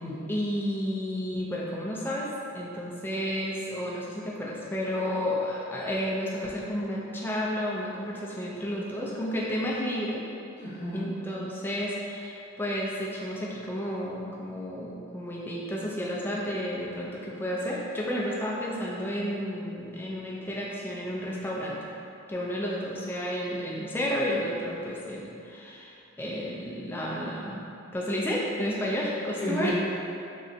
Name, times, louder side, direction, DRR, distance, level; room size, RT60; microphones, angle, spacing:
voice 1, 0.3-10.2 10.9-21.8 22.3-27.6 27.9-29.7, equal, 10° left, -4 dB, 0.4 m, -31 dB
voice 2, 10.6-11.1 29.3-29.7, equal, 55° left, -11 dB, 0.8 m, -32 dB
3.7 x 3.2 x 2.7 m, 2.7 s
head